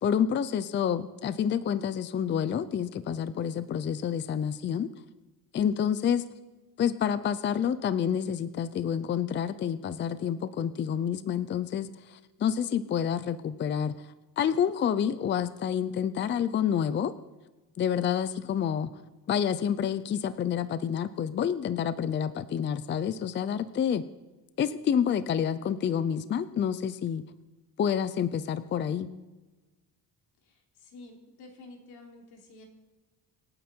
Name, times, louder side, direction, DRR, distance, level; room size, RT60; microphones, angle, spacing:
voice 1, 0.0-4.9 5.5-6.2 6.8-13.9 14.4-17.1 17.8-18.9 19.3-24.0 24.6-27.2 27.8-29.1, left 8 dB, 30° left, 14 dB, 0.5 m, -28 dB
voice 2, 30.8-32.7, left 2 dB, 90° left, 1 dB, 3.5 m, -49 dB
26.0 x 9.2 x 4.4 m, 1.2 s
cardioid pair, 160°, 38 cm